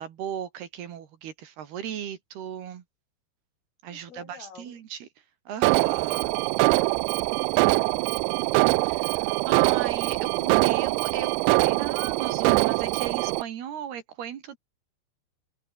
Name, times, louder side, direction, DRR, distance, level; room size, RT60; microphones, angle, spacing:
voice 1, 0.0-2.8 3.8-5.1 5.5-6.3 8.9-14.6, right 9 dB, 60° right, 3.6 m, -36 dB
voice 2, 3.9-4.8 7.1-9.9, left 6 dB, 85° left, 8.7 m, -51 dB
Alarm, 5.6-13.4, right 22 dB, 85° right, 2.7 m, -23 dB
omnidirectional pair, 5.7 m